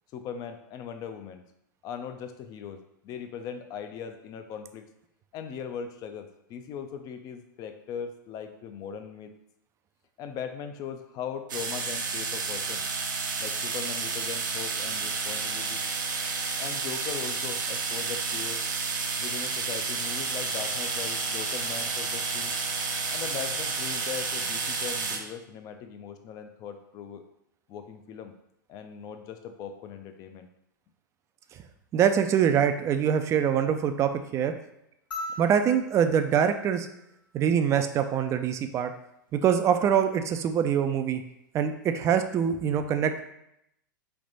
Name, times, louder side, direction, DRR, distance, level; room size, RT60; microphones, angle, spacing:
voice 1, 0.1-1.4 1.8-4.9 5.3-9.3 10.2-12.9 13.4-15.8 16.6-18.6 19.2-22.6 23.1-27.2 27.7-28.3 28.7-30.5, left 7 dB, 35° left, 8 dB, 0.5 m, -39 dB
sound 1, 11.5-25.2, right 4 dB, 70° right, 0.7 m, -31 dB
voice 2, 31.9-34.5 35.4-36.9 37.3-38.9 39.3-41.2 41.5-43.2, right 8 dB, 25° right, 8 dB, 0.4 m, -24 dB
sound 2, 35.1-37.7 39.3-39.4, left 1 dB, 80° left, 1.0 m, -41 dB
3.4 x 2.9 x 3.9 m, 0.79 s
figure-of-eight pair, 95°, 11 cm